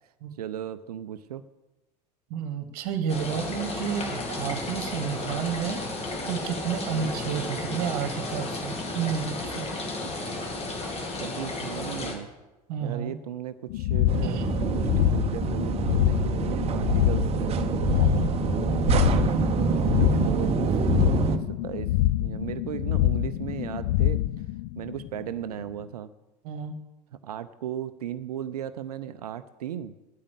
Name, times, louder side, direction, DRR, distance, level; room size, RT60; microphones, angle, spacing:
voice 1, 0.3-1.4 6.8-7.1 10.5-10.6 11.2-12.3 12.8-14.4 14.7-17.5 18.1-18.3 18.6-18.8 19.6-21.9 22.2-24.2 24.8-26.1 27.2-30.0, right 10 dB, 65° right, 12 dB, 0.5 m, -36 dB
voice 2, 2.3-5.8 6.2-9.7 12.7-13.1 14.2-14.5 17.9-18.3 26.4-26.7, right 8 dB, 45° right, 9 dB, 1.3 m, -31 dB
sound 1, 3.1-12.1, left 2 dB, 30° left, 2.2 m, -33 dB
sound 2, 13.7-25.5, left 15 dB, 45° left, 0.4 m, -26 dB
sound 3, 14.1-21.4, right 5 dB, 30° right, 0.9 m, -26 dB
9.3 x 8.7 x 8.3 m, 1.1 s
figure-of-eight pair, 75°, 21 cm